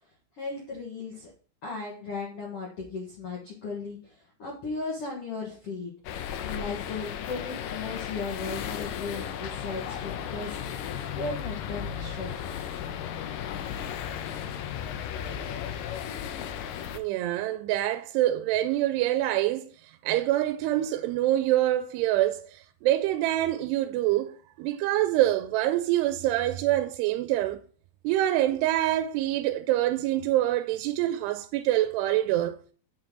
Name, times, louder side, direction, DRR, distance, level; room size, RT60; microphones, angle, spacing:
voice 1, 0.3-1.3 1.6-5.9 6.4-10.6 11.1-12.6, left 4 dB, 60° left, 1.6 m, -36 dB
sound 1, 6.0-17.0, left 9 dB, 85° left, 2.0 m, -35 dB
voice 2, 16.9-19.7 20.0-27.6 28.0-32.6, right 14 dB, 85° right, 2.6 m, -25 dB
7.6 x 6.0 x 3.7 m
omnidirectional pair, 4.7 m